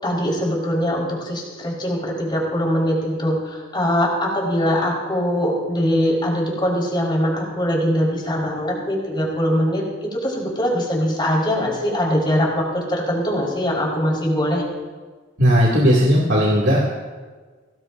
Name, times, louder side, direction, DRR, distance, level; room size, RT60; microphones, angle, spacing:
voice 1, 0.0-14.6, equal, 25° left, -4 dB, 4.6 m, -22 dB
voice 2, 15.4-16.8, equal, 75° right, -5 dB, 2.6 m, -16 dB
23.0 x 18.0 x 2.7 m, 1.4 s
head